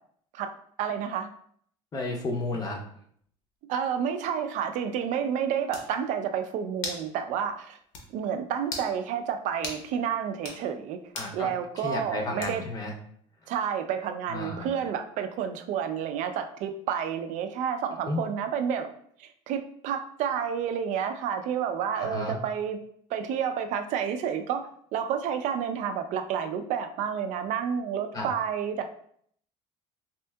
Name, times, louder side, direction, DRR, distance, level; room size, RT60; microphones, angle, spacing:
voice 1, 0.8-1.3 3.7-7.8 8.1-11.0 11.3-12.6 13.5-18.9 19.2-22.8 23.1-28.9, right 8 dB, 60° right, 7 dB, 0.4 m, -30 dB
voice 2, 1.9-2.8 11.1-12.9 14.3-14.7 18.1-18.2 22.0-22.4 28.1-28.3, left 2 dB, 25° left, 2 dB, 0.6 m, -32 dB
sound 1, 5.3-5.4 5.7-5.9 6.8-7.1 7.4-7.5 7.9-8.1 8.6-8.9 9.6-9.8 10.3-10.6 11.1-11.4 12.4-12.8, left 3 dB, 80° left, 0.9 m, -37 dB
4.2 x 2.7 x 2.2 m, 0.63 s
cardioid pair, 140°, 14 cm